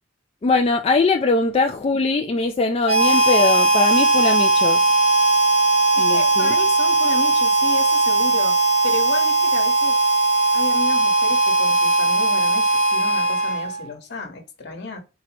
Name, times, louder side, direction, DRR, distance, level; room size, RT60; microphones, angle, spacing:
voice 1, 0.4-4.9 6.0-6.5, left 3 dB, 30° left, 0.3 m, -21 dB
Harmonica, 2.8-13.9, right 2 dB, 30° right, 0.9 m, -18 dB
voice 2, 5.9-10.0 10.5-15.0, left 3 dB, 60° left, 1.1 m, -33 dB
4.4 x 2.0 x 4.5 m
head